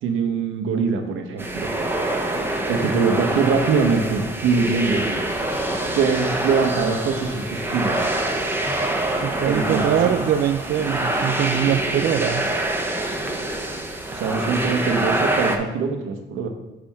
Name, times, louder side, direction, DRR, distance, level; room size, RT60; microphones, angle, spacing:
voice 1, 0.0-1.7 2.7-5.1 6.0-8.1 9.5-10.0 14.1-16.5, right 5 dB, 90° right, 4 dB, 1.0 m, -23 dB
sound 1, 1.4-15.6, right 1 dB, 10° right, 0.9 m, -25 dB
sound 2, 4.9-12.3, left 1 dB, 40° left, 1.7 m, -41 dB
voice 2, 9.2-12.5, right 10 dB, 55° right, 8 dB, 0.4 m, -22 dB
7.4 x 3.4 x 5.8 m, 1.0 s
cardioid pair, 90°, 20 cm